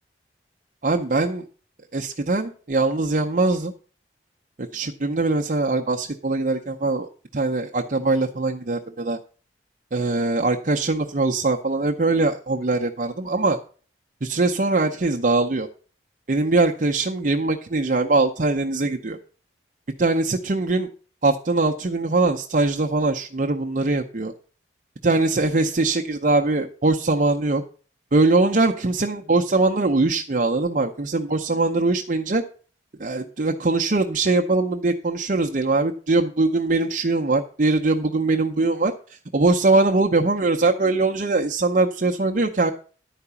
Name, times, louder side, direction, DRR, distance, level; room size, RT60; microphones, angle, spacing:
voice 1, 0.8-1.4 1.9-3.7 4.6-9.2 9.9-13.6 14.2-15.7 16.3-19.2 20.0-20.9 21.2-24.3 25.0-27.6 28.1-32.4 33.0-42.7, right 3 dB, 45° right, 2 dB, 0.6 m, -22 dB
11.0 x 4.8 x 6.8 m, 0.40 s
head